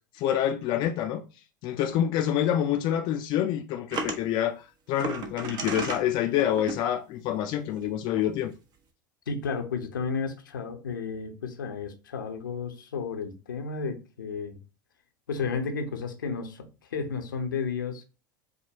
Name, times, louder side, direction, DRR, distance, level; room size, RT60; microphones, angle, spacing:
voice 1, 0.1-1.2 1.6-8.5, left 10 dB, 50° left, 0.4 m, -27 dB
sound 1, 3.9-4.2 5.0-6.0 6.4-6.8 7.8-7.9 8.2-8.3, right 3 dB, 40° right, 0.7 m, -33 dB
voice 2, 9.3-14.6 15.3-18.0, left 5 dB, 80° left, 0.7 m, -32 dB
4.9 x 2.1 x 2.8 m
figure-of-eight pair, 80°, 11 cm